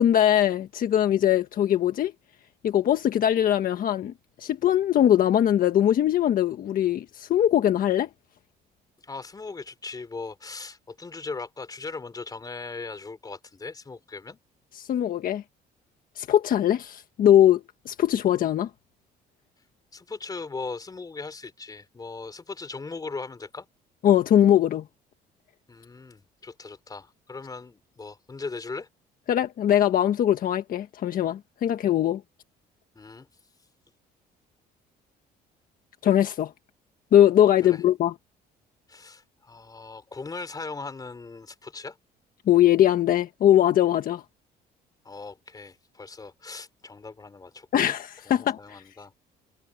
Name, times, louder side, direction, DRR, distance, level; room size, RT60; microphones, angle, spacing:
voice 1, 0.0-2.1 2.6-4.1 4.4-8.1 14.8-15.4 16.2-18.7 24.0-24.8 29.3-32.2 36.0-36.5 37.1-38.1 42.5-44.2 47.7-48.8, left 11 dB, 55° left, 1.5 m, -21 dB
voice 2, 9.0-14.4 19.9-23.7 25.7-28.9 33.0-33.3 37.7-37.8 38.9-42.0 45.0-47.9 48.3-49.1, left 4 dB, 20° left, 3.6 m, -39 dB
cardioid pair, 110°, 17 cm